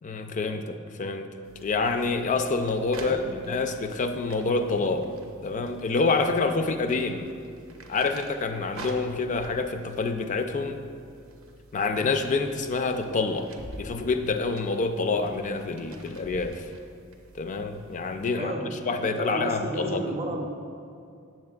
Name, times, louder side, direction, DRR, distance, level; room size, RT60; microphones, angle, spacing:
voice 1, 0.0-1.3 1.6-3.2 3.5-5.1 5.4-7.3 7.9-10.8 11.7-13.5 13.8-16.7 17.3-18.5 18.9-20.0, left 3 dB, 35° left, 7 dB, 0.3 m, -27 dB
sound 1, 1.4-18.2, right 2 dB, 70° right, 0.6 m, -48 dB
voice 2, 3.0-3.4 18.4-20.5, right 1 dB, 30° right, 2 dB, 0.5 m, -32 dB
7.5 x 7.4 x 2.3 m, 2.5 s
head